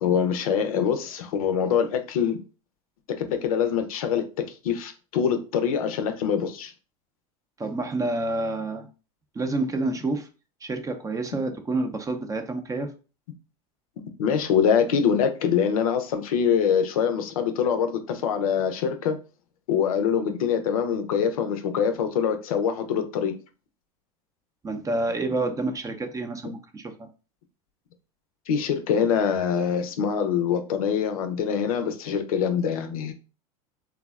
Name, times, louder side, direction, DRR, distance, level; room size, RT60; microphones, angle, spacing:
voice 1, 0.0-2.4 3.2-4.2 4.6-6.7 14.2-19.2 19.7-23.3 28.5-33.1, left 7 dB, 85° left, 0.5 m, -24 dB
voice 2, 7.6-8.9 9.3-10.3 10.6-12.9 24.6-27.1, right 2 dB, 20° right, 0.5 m, -28 dB
3.3 x 2.0 x 2.3 m
hypercardioid pair, 95°, 18 cm